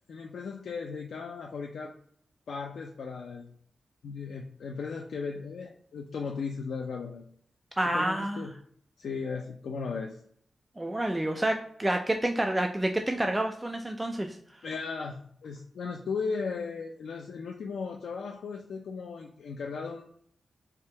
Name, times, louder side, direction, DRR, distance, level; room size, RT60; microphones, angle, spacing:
voice 1, 0.1-1.9 2.5-3.5 4.0-7.3 7.9-8.5 9.0-10.2 14.6-20.0, left 5 dB, 85° left, 1 dB, 0.4 m, -36 dB
voice 2, 7.8-8.4 10.8-14.6, right 1 dB, 10° right, 4 dB, 0.3 m, -29 dB
3.5 x 2.8 x 4.2 m, 0.63 s
wide cardioid pair, 175°, 0 cm